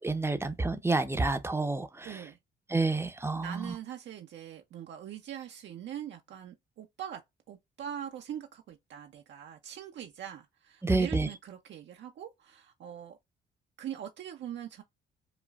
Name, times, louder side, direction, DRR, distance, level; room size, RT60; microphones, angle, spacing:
voice 1, 0.0-2.2 2.7-3.7 10.8-11.3, right 3 dB, 10° right, 0.6 m, -29 dB
voice 2, 2.0-2.4 3.3-7.2 7.5-13.2 13.8-14.8, right 10 dB, 65° right, 0.5 m, -42 dB
5.0 x 2.4 x 2.3 m
cardioid pair, 90°, 20 cm